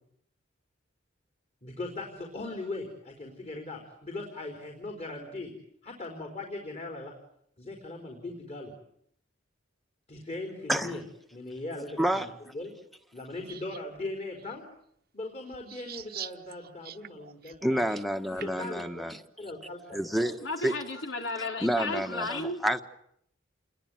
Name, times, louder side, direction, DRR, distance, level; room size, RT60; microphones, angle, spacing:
voice 1, 1.6-5.5 5.8-7.1 7.6-8.7 10.1-11.0 11.3-12.7 13.1-14.6 15.1-17.9 18.3-20.0, left 2 dB, 35° left, 2 dB, 4.4 m, -39 dB
voice 2, 12.0-12.3 17.6-19.2 19.9-20.4 20.6-20.7 21.6-22.8, equal, ahead, 8 dB, 1.4 m, -28 dB
sound 1, 13.5-13.8 14.4-14.5 15.5-18.7, right 10 dB, 55° right, 1.1 m, -44 dB
voice 3, 20.2-22.6, left 2 dB, 80° left, 3 dB, 4.4 m, -34 dB
29.0 x 21.5 x 9.2 m, 0.72 s
head